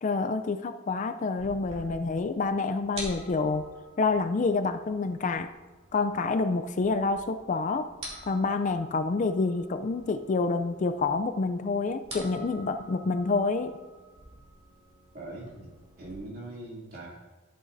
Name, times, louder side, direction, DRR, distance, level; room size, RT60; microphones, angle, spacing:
voice 1, 0.0-3.6 4.0-5.5 5.9-7.9 8.3-13.8, left 3 dB, 40° left, 9 dB, 0.3 m, -28 dB
sound 1, 1.4-16.2, right 1 dB, 30° right, 2.7 m, -48 dB
voice 2, 15.1-17.1, right 2 dB, 45° right, -4 dB, 2.7 m, -42 dB
13.0 x 8.8 x 2.6 m, 1.3 s
head